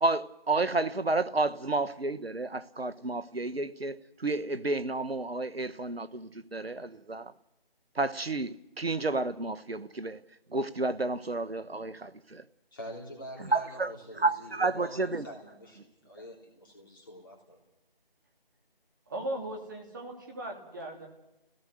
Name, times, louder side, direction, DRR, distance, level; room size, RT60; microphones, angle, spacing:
voice 1, 0.0-7.3 8.0-10.2 10.5-12.4 13.5-15.2, right 3 dB, 90° right, 1.2 m, -31 dB
voice 2, 12.7-17.6, equal, 20° left, 3.8 m, -46 dB
voice 3, 19.1-21.1, right 1 dB, 20° right, 3.0 m, -38 dB
30.0 x 17.0 x 6.6 m
figure-of-eight pair, 165°, 29 cm